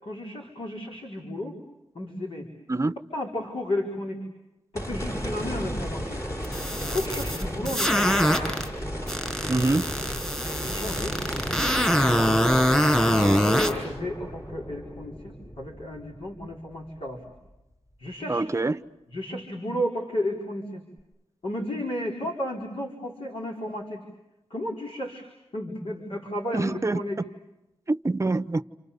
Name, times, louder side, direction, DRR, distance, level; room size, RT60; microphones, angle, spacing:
voice 1, 0.0-1.6 1.9-2.5 3.1-4.2 4.7-6.2 6.8-8.3 10.6-11.2 13.0-17.2 18.0-18.5 19.1-20.8 21.4-24.0 24.5-27.2, left 1 dB, 60° left, 4.5 m, -33 dB
sound 1, 4.7-17.1 17.5-17.6 21.0-21.1, equal, 30° left, 5.0 m, -34 dB
sound 2, 6.4-8.7 9.1-13.7, equal, 10° left, 6.4 m, -23 dB
voice 2, 9.5-9.9 18.3-18.8 26.5-27.0 27.9-28.6, right 2 dB, 30° right, 0.9 m, -25 dB
29.5 x 28.5 x 6.9 m
wide cardioid pair, 100°, 10 cm